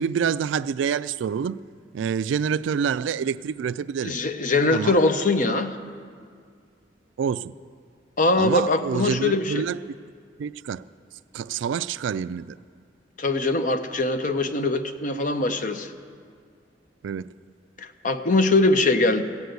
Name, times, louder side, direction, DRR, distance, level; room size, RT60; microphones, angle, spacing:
voice 1, 0.0-1.6 1.9-4.2 4.7-5.0 7.2-7.5 8.4-9.8 10.4-10.8 11.3-12.6 17.0-17.3, right 7 dB, 80° right, 0.3 m, -27 dB
voice 2, 4.0-5.8 8.2-9.6 13.2-15.9 17.8-19.2, left 2 dB, 45° left, 0.7 m, -22 dB
15.5 x 8.2 x 7.9 m
head